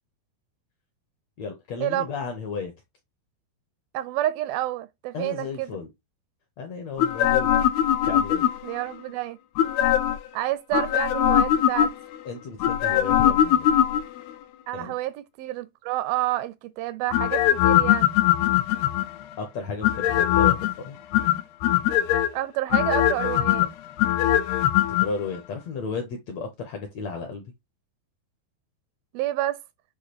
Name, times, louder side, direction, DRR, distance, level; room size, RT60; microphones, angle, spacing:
voice 1, 1.4-2.7 5.1-5.9 6.6-7.5 8.0-8.5 12.2-13.7 14.7-14.9 19.4-21.0 25.0-27.4, left 5 dB, 70° left, 1.6 m, -33 dB
voice 2, 3.9-5.8 8.6-9.4 10.3-11.9 14.7-18.1 22.3-23.7 29.1-29.6, right 14 dB, 80° right, 2.2 m, -29 dB
sound 1, 7.0-8.8 9.6-10.3 10.7-12.2 12.6-14.3 17.1-19.2 19.8-20.7 21.1-22.3 22.7-25.1 25.4-25.5, left 12 dB, 85° left, 2.7 m, -21 dB
8.1 x 2.9 x 4.2 m
omnidirectional pair, 4.4 m